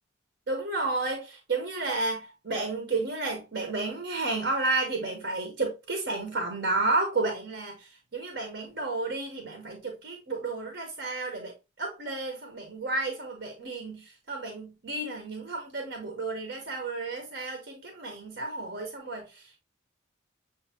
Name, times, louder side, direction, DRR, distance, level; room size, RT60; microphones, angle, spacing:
voice 1, 0.5-11.5 11.8-19.6, right 3 dB, 60° right, 1.0 m, -32 dB
7.0 x 2.7 x 2.8 m
head